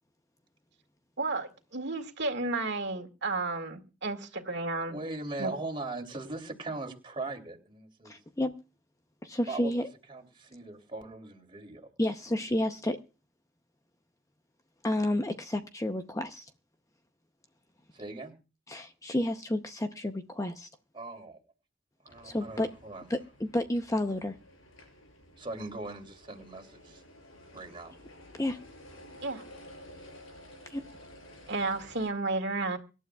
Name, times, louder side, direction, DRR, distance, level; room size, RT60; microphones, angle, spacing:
voice 1, 1.2-5.0 5.4-5.5 29.2-29.5 31.5-32.8, right 3 dB, 55° right, 2.0 m, -32 dB
voice 2, 4.9-8.2 9.5-9.8 10.1-11.9 17.9-18.3 20.9-21.4 22.0-23.1 25.4-27.0 27.5-27.9, right 2 dB, 25° right, 3.1 m, -40 dB
voice 3, 8.0-8.5 9.2-9.9 12.0-13.0 14.8-16.5 18.7-20.7 22.2-22.7 23.1-24.3 28.4-28.6 30.7-30.8, left 1 dB, 15° left, 0.7 m, -31 dB
sound 1, 22.1-32.1, left 1 dB, 80° left, 6.0 m, -52 dB
25.0 x 12.0 x 2.3 m
head